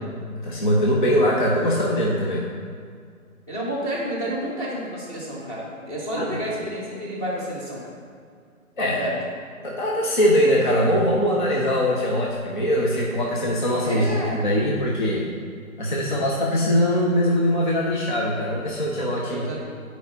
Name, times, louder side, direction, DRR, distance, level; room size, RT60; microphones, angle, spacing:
voice 1, 0.4-2.4 6.2-6.4 8.8-9.1 9.6-15.3 15.8-19.5, equal, 35° left, -3 dB, 0.7 m, -22 dB
voice 2, 3.5-7.9 8.8-9.1 13.8-14.4 19.3-19.6, right 1 dB, 15° left, -5 dB, 1.3 m, -30 dB
9.2 x 4.6 x 4.0 m, 2.1 s
figure-of-eight pair, 160°, 43 cm